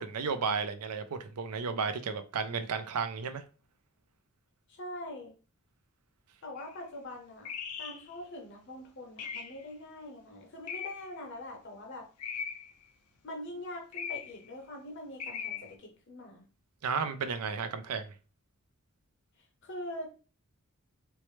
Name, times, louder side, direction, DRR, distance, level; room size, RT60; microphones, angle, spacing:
voice 1, 0.0-3.4 16.8-18.1, right 5 dB, 85° right, 0.5 m, -33 dB
voice 2, 4.7-5.3 6.4-7.5 7.8-12.1 13.2-16.5 19.6-20.1, left 1 dB, 55° left, 0.7 m, -43 dB
sound 1, 6.6-6.7 7.5-8.1 9.2-9.6 10.7-11.2 12.2-12.8 13.9-14.5 15.2-15.7, left 7 dB, 90° left, 0.6 m, -39 dB
4.4 x 2.1 x 3.1 m
head